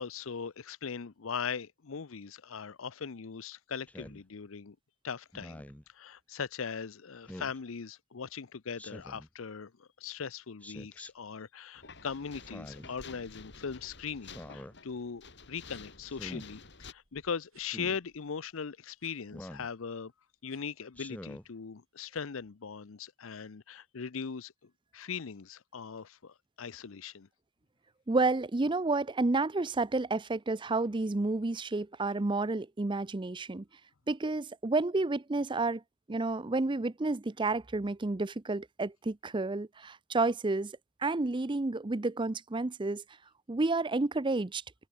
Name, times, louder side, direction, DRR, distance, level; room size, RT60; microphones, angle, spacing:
voice 1, 0.0-4.8 5.0-5.6 5.9-20.1 20.4-27.3, left 6 dB, 75° left, 0.7 m, -40 dB
Speech synthesizer, 3.9-4.2 5.3-5.8 7.3-7.6 8.8-9.3 10.6-11.1 12.4-12.9 14.2-14.7 16.1-16.5 17.7-18.0 19.3-19.7 20.9-21.5, left 1 dB, 5° left, 1.0 m, -46 dB
sound 1, 11.8-16.9, left 4 dB, 60° left, 6.3 m, -50 dB
sound 2, 14.9-15.1 15.7-16.1 16.6-16.7 16.9-19.2 19.5-19.7 20.4-20.9 21.3-21.6 22.1-22.2, right 5 dB, 85° right, 6.3 m, -67 dB
voice 2, 28.1-33.6 34.1-35.8 36.1-40.7 41.0-43.0 43.5-44.6, right 3 dB, 25° right, 0.6 m, -30 dB
open air
head